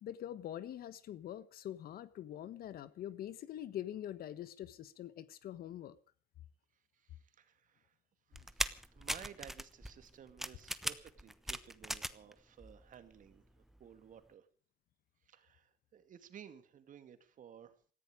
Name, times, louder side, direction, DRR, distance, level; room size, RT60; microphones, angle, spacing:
voice 1, 0.0-5.9, left 11 dB, 65° left, 1.3 m, -44 dB
voice 2, 7.0-7.9 8.3-14.5 15.3-17.7, right 8 dB, 50° right, 2.3 m, -56 dB
sound 1, 8.3-12.3 12.6-13.4 13.7-13.8, equal, ahead, 1.0 m, -40 dB
18.5 x 15.0 x 5.0 m
cardioid pair, 110°, 17 cm